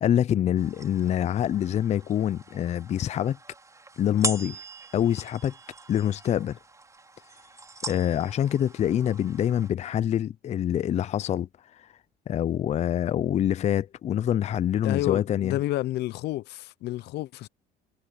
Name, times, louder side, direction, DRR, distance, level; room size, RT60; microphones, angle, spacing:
voice 1, 0.0-3.4 4.0-4.6 4.9-5.5 5.9-6.6 7.9-11.5 11.8-11.9 12.3-15.6, left 10 dB, 40° left, 0.5 m, -25 dB
sound 1, 0.6-9.7, right 2 dB, 20° right, 4.6 m, -40 dB
voice 2, 14.8-17.5, left 16 dB, 80° left, 0.7 m, -30 dB
cardioid pair, 110°, 17 cm